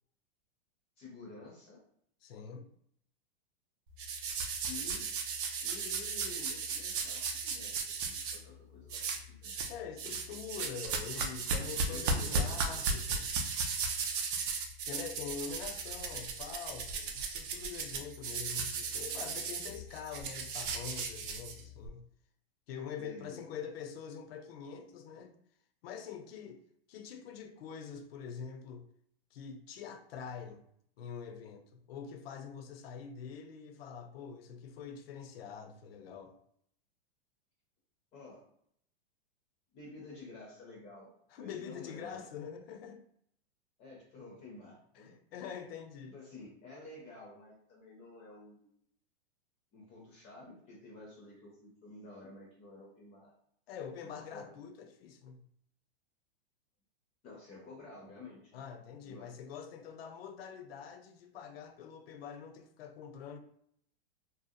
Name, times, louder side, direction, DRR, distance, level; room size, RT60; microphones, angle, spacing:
voice 1, 1.0-1.8 4.7-5.1 5.6-9.5 11.7-12.8 23.0-23.4 38.1-38.4 39.7-42.3 43.8-45.2 46.1-48.7 49.7-53.3 54.0-54.5 57.2-58.6 59.0-59.3, left 3 dB, 20° left, 0.4 m, -51 dB
voice 2, 2.2-2.6 9.7-13.3 14.9-22.0 22.7-25.3 25.8-26.6 26.9-28.8 29.3-30.6 31.0-36.4 41.3-43.0 45.0-46.1 53.7-55.5 58.5-63.4, left 7 dB, 75° left, 0.5 m, -45 dB
sound 1, 4.0-8.4 8.9-9.7 10.0-21.9, right 4 dB, 55° right, 0.5 m, -36 dB
2.6 x 2.0 x 2.4 m
supercardioid pair, 155°, 31 cm